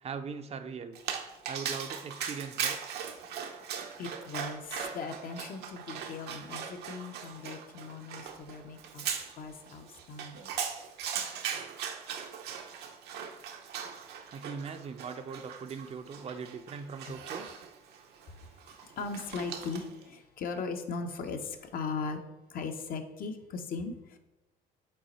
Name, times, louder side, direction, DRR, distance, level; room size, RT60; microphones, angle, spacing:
voice 1, 0.0-1.0 1.5-2.8 14.3-17.5, right 5 dB, 40° right, 8 dB, 0.5 m, -40 dB
Dog, 0.9-20.0, right 7 dB, 75° right, 0.7 m, -39 dB
voice 2, 4.0-9.0 9.4-10.5 17.0-17.1 18.8-22.2 22.5-24.2, left 4 dB, 60° left, 6 dB, 0.8 m, -38 dB
5.4 x 4.1 x 4.3 m, 0.97 s
cardioid pair, 110°, 17 cm